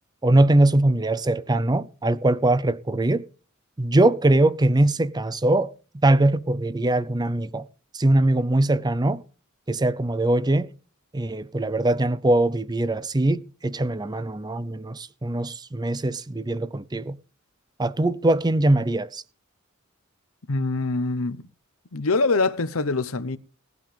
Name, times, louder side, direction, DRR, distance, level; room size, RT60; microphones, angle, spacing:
voice 1, 0.2-3.2 3.8-5.7 6.0-7.7 7.9-9.2 9.7-10.7 11.1-17.2 17.8-19.2, right 1 dB, 20° right, 0.6 m, -21 dB
voice 2, 20.5-21.4 21.9-23.4, left 3 dB, 75° left, 0.9 m, -24 dB
17.5 x 12.0 x 3.4 m
head